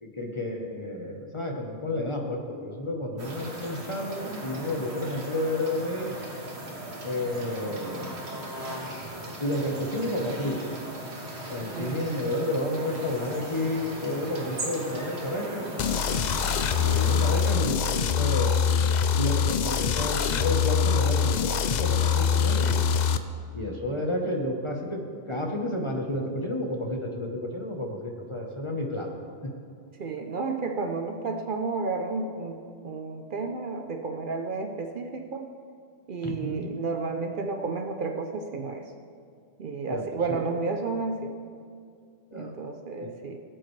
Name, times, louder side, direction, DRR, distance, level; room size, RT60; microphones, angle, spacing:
voice 1, 0.0-6.1 7.0-8.2 9.4-10.6 11.5-16.2 16.7-18.8 19.2-22.8 23.5-29.1 29.4-29.5 36.4-36.7 39.9-40.4 42.3-42.5 43.0-43.1, left 1 dB, 30° left, 1 dB, 1.0 m, -31 dB
sound 1, 3.2-17.5, right 1 dB, 70° right, 1.7 m, -38 dB
voice 2, 11.7-12.2 30.0-35.5 36.1-38.8 39.6-41.3 42.3-43.4, right 4 dB, 55° right, 5 dB, 0.7 m, -32 dB
sound 2, 15.8-23.2, left 7 dB, 55° left, 0.5 m, -24 dB
17.0 x 7.8 x 3.2 m, 2.3 s
omnidirectional pair, 1.1 m